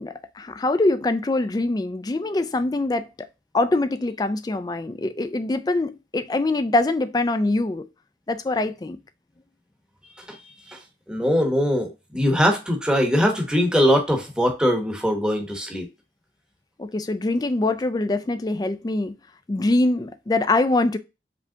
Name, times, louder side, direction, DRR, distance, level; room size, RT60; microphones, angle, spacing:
voice 1, 0.0-3.3 3.5-7.9 8.3-9.0 16.8-19.2 19.5-21.0, left 2 dB, 20° left, 0.3 m, -23 dB
voice 2, 11.1-15.8, equal, 5° right, 0.9 m, -21 dB
5.0 x 3.4 x 2.7 m
head